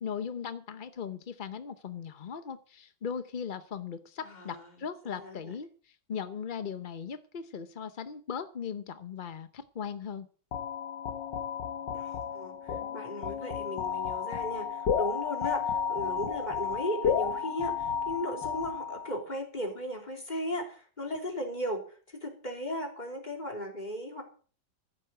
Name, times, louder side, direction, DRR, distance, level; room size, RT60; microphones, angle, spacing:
voice 1, 0.0-10.3, left 7 dB, 55° left, 11 dB, 0.5 m, -38 dB
voice 2, 5.1-5.4 11.9-21.8 22.1-24.2, equal, 25° left, 2 dB, 3.6 m, -36 dB
sound 1, 10.5-19.2, left 7 dB, 75° left, 1.9 m, -32 dB
15.0 x 7.7 x 7.9 m, 0.42 s
omnidirectional pair, 2.0 m